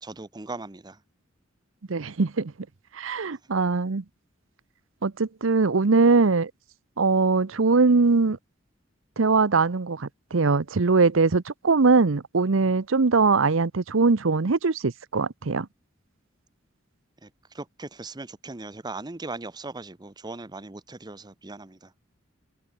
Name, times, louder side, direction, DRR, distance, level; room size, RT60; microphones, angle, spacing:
voice 1, 0.0-1.0 17.2-17.3 17.5-21.9, right 3 dB, 20° right, 0.8 m, -38 dB
voice 2, 1.9-2.5 2.9-4.0 5.0-6.5 7.0-8.4 9.2-15.7, right 4 dB, 75° right, 0.8 m, -21 dB
open air
head